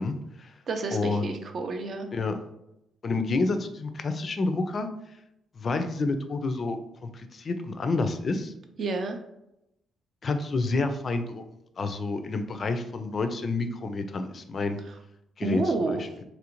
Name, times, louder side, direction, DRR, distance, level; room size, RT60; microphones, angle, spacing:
voice 1, 0.0-0.5 0.9-1.4 2.1-2.4 3.0-4.9 5.6-8.5 10.2-11.4 11.8-14.8 15.4-15.6 15.9-16.0, left 3 dB, 45° left, 7 dB, 0.3 m, -29 dB
voice 2, 0.7-2.1 8.8-9.2 15.4-16.0, right 3 dB, 55° right, 5 dB, 0.4 m, -29 dB
2.9 x 2.5 x 2.9 m, 0.85 s
cardioid pair, 90°, 0 cm